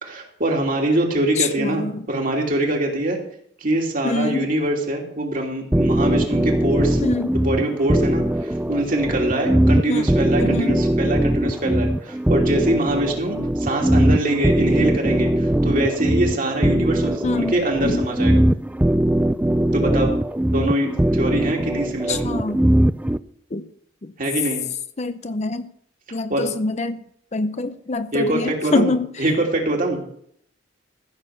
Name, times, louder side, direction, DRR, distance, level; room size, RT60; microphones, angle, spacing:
voice 1, 0.0-3.2 3.6-7.0 7.3-18.4 19.7-20.2 20.5-22.2 24.2-24.6 26.3-26.5 27.5-27.6 28.1-28.9 29.2-30.0, right 1 dB, 45° right, 1 dB, 2.9 m, -23 dB
voice 2, 1.4-2.1 4.0-4.5 6.2-6.3 7.0-7.4 9.9-10.0 10.4-10.7 17.2-18.1 22.1-22.6 23.5-23.7 24.0-24.1 25.0-25.7 26.1-27.0 27.3-29.1, left 3 dB, 35° left, 11 dB, 0.6 m, -25 dB
sound 1, 5.7-23.2, right 1 dB, 10° right, 0.4 m, -20 dB
15.0 x 6.5 x 7.0 m, 0.66 s
head